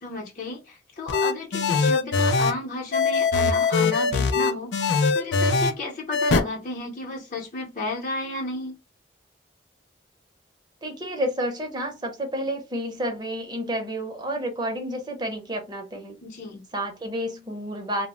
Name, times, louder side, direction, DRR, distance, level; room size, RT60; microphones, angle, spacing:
voice 1, 0.0-8.8 16.2-16.6, left 3 dB, 45° left, 0.7 m, -33 dB
sound 1, 1.1-2.5 2.9-5.7 6.1-6.4, left 4 dB, 90° left, 0.4 m, -21 dB
voice 2, 10.8-16.2 16.7-18.1, equal, 25° right, 0.6 m, -30 dB
2.0 x 2.0 x 3.5 m
head